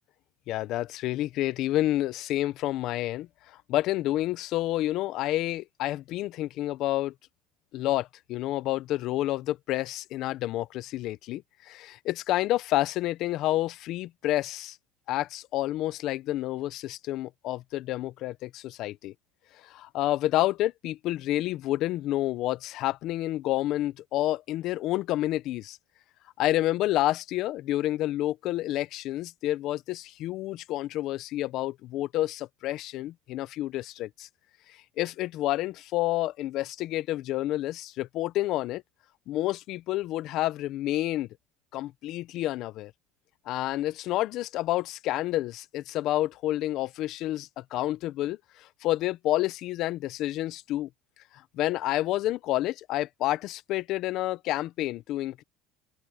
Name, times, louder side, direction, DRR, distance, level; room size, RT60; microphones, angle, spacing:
voice 1, 0.5-7.1 7.7-14.8 15.1-19.1 19.6-25.8 26.4-34.3 35.0-38.8 39.3-41.3 41.7-42.9 43.5-50.9 51.5-55.4, left 15 dB, 55° left, 0.8 m, -29 dB
open air
supercardioid pair, 130°, 0 cm